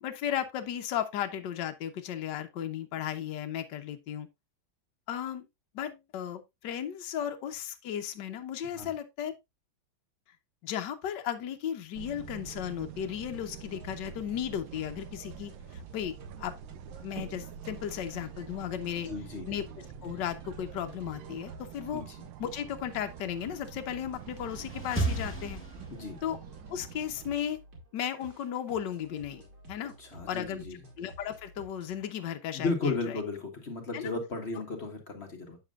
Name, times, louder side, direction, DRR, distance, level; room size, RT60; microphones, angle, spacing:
voice 1, 0.0-4.3 5.1-5.4 5.7-9.3 10.6-16.5 17.0-19.1 19.5-22.0 22.4-25.6 26.2-26.4 26.7-27.6 27.9-29.4 29.7-29.9 30.3-30.6 31.0-33.0 33.9-34.1, left 10 dB, 70° left, 1.5 m, -35 dB
sound 1, 11.9-27.4, right 9 dB, 80° right, 1.4 m, -46 dB
sound 2, 13.3-32.1, right 1 dB, 55° right, 2.9 m, -52 dB
voice 2, 19.1-19.5 21.9-22.1 25.9-26.2 30.0-30.8 32.5-35.6, left 3 dB, 35° left, 1.6 m, -34 dB
sound 3, 24.1-26.4, right 1 dB, 5° left, 1.7 m, -35 dB
8.6 x 7.1 x 2.4 m
omnidirectional pair, 2.1 m